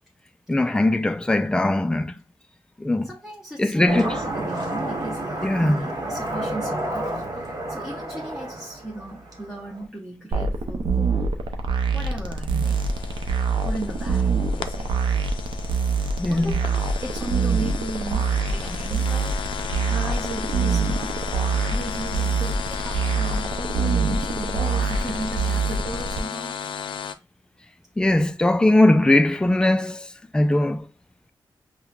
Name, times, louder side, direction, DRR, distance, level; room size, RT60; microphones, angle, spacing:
voice 1, 0.5-2.1 2.8-3.1 3.6-4.1 5.4-5.9 12.5-12.7 16.2-16.5 28.0-30.1 30.3-30.8, left 1 dB, 10° left, 0.3 m, -20 dB
voice 2, 3.0-11.3 11.9-12.8 13.6-15.0 16.3-19.3 19.9-26.6, right 1 dB, 5° right, 0.8 m, -36 dB
sound 1, 3.8-9.8, right 1 dB, 50° right, 1.0 m, -30 dB
sound 2, 10.3-26.2, right 4 dB, 75° right, 0.5 m, -25 dB
sound 3, 12.6-27.1, left 8 dB, 85° left, 0.4 m, -34 dB
5.5 x 2.1 x 2.3 m
wide cardioid pair, 105°, 8 cm